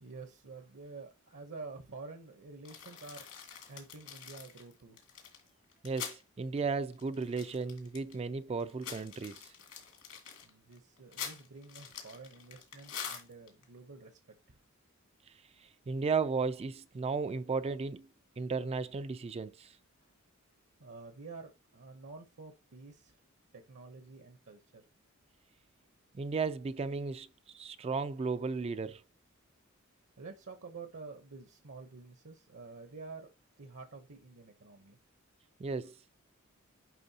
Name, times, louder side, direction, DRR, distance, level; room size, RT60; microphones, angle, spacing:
voice 1, 0.0-5.0 10.4-14.2 14.5-14.6 20.0-20.1 20.8-23.2 23.5-24.8 30.2-33.3 33.6-35.0, right 4 dB, 65° right, 0.9 m, -49 dB
sound 1, 2.6-6.2 6.6-6.7 6.9-8.2 8.6-13.6, left 7 dB, 75° left, 2.2 m, -45 dB
voice 2, 5.8-9.5 15.9-18.1 18.4-19.7 26.1-27.3 27.5-29.0 35.6-35.9, right 4 dB, 30° right, 0.3 m, -34 dB
10.5 x 3.6 x 2.8 m
head